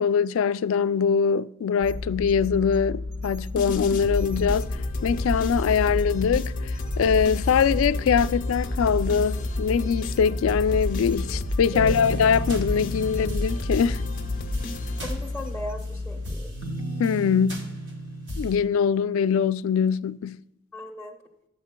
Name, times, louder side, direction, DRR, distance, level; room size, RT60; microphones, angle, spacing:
voice 1, 0.0-4.7 5.0-14.0 17.0-17.7 18.4-20.4, left 6 dB, 80° left, 0.3 m, -23 dB
sound 1, 1.8-16.3, left 2 dB, 85° right, 1.5 m, -33 dB
sound 2, 3.6-15.7, left 1 dB, 40° left, 0.8 m, -31 dB
sound 3, 11.7-15.9 16.2-18.6, right 1 dB, 60° right, 1.7 m, -35 dB
voice 2, 15.0-16.5 20.7-21.1, left 1 dB, 5° left, 0.9 m, -37 dB
11.5 x 8.3 x 2.2 m
head